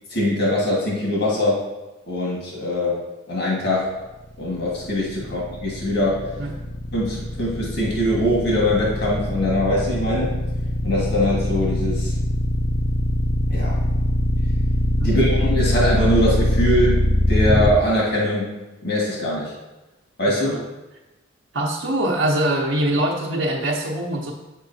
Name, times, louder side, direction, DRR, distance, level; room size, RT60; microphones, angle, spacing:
voice 1, 0.1-1.6 2.1-3.0 3.3-3.9 4.4-6.3 6.9-10.3 10.8-12.1 13.5-13.8 15.0-18.5 18.8-19.5 20.2-20.5, left 1 dB, 60° left, -4 dB, 1.7 m, -22 dB
sound 1, 4.4-17.7, left 1 dB, 25° left, 0.3 m, -22 dB
voice 2, 20.3-20.6 21.5-24.3, right 1 dB, 70° right, -4 dB, 0.8 m, -23 dB
8.2 x 6.5 x 2.7 m, 1.1 s
head